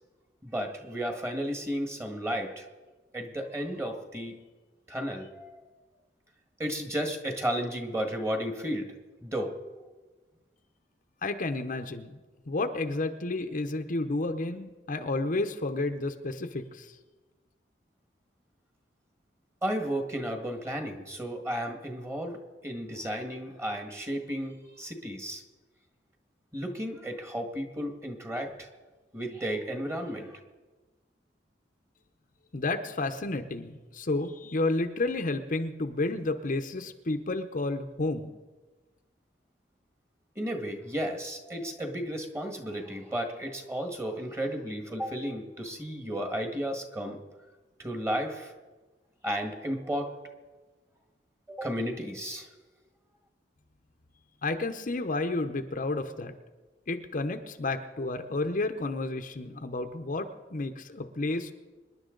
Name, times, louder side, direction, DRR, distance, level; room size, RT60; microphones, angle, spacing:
voice 1, 0.4-2.7 3.1-4.4 4.9-5.6 6.6-8.9 9.2-9.6 19.6-25.4 26.5-28.7 29.1-30.3 40.4-47.2 47.8-48.5 49.2-50.1 51.5-52.5, equal, 15° right, 4 dB, 1.8 m, -33 dB
voice 2, 11.2-12.2 12.5-17.0 32.5-38.3 54.4-56.3 56.9-61.5, left 2 dB, 50° left, 7 dB, 0.8 m, -31 dB
26.0 x 10.5 x 3.9 m, 1.3 s
head